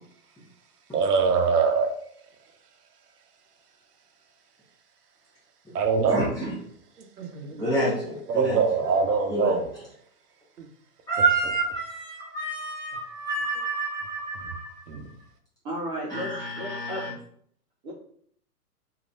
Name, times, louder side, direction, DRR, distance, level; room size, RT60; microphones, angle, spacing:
voice 1, 0.9-1.9 5.7-6.3 7.0-7.6 8.3-9.7 10.6-10.7 14.9-15.0, right 5 dB, 80° right, 5 dB, 0.8 m, -23 dB
voice 2, 6.1-6.5 7.5-8.6 9.3-9.6 11.1-15.0 16.1-17.1, right 2 dB, 10° left, -9 dB, 1.0 m, -28 dB
voice 3, 15.6-17.1 17.8-17.9, equal, 30° right, -8 dB, 0.9 m, -33 dB
3.0 x 2.8 x 2.5 m, 0.62 s
hypercardioid pair, 130°, 46 cm